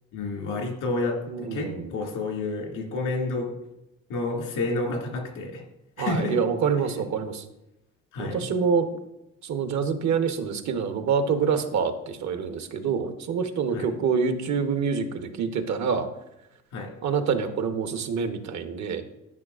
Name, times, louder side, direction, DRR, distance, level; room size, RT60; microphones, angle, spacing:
voice 1, 0.1-3.5 4.1-5.6 6.0-6.4 8.1-8.5 13.7-13.9 16.7-16.9, left 3 dB, 90° left, -1 dB, 2.2 m, -29 dB
voice 2, 1.3-1.9 6.0-7.4 8.2-8.9 9.4-16.1 17.0-19.0, right 6 dB, 65° right, 8 dB, 0.9 m, -26 dB
10.5 x 6.3 x 2.4 m, 0.89 s
cardioid pair, 90°, 30 cm